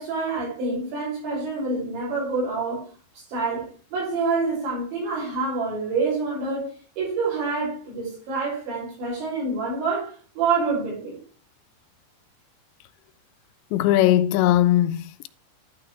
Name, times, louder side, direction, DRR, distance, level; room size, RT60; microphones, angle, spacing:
voice 1, 0.0-2.9 3.3-6.7 7.0-11.2, right 4 dB, 85° right, 8.5 m, -27 dB
voice 2, 13.7-15.3, left 13 dB, 85° left, 2.8 m, -19 dB
12.0 x 6.4 x 3.5 m
omnidirectional pair, 5.1 m